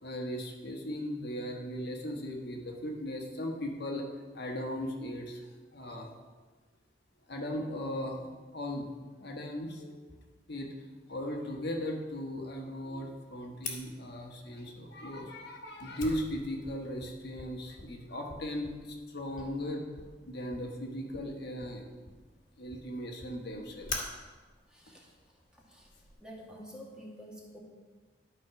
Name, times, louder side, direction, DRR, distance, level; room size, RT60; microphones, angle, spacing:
voice 1, 0.0-4.1 4.3-6.2 7.3-8.2 8.5-8.9 9.2-10.0 10.5-10.7 11.1-19.9 20.2-22.0 22.6-23.9, left 1 dB, 60° left, 1 dB, 1.3 m, -37 dB
Fire, 13.6-26.1, left 3 dB, 45° left, 1.6 m, -46 dB
voice 2, 24.7-25.9 26.2-27.6, equal, 5° right, -3 dB, 1.6 m, -49 dB
12.0 x 4.2 x 5.9 m, 1.4 s
head